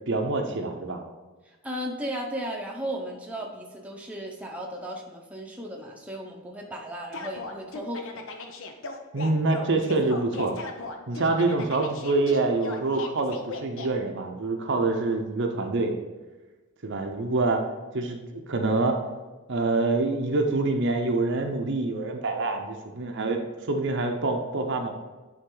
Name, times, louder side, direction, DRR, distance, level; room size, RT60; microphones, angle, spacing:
voice 1, 0.1-1.0 9.1-10.6 11.1-16.0 16.8-17.6 17.9-19.0 19.5-23.4 23.7-24.9, right 3 dB, 55° right, 4 dB, 0.7 m, -26 dB
voice 2, 1.6-8.2, equal, 5° right, -1 dB, 0.7 m, -35 dB
sound 1, 7.1-13.9, left 3 dB, 60° left, 0.7 m, -38 dB
9.7 x 3.6 x 3.8 m, 1.2 s
head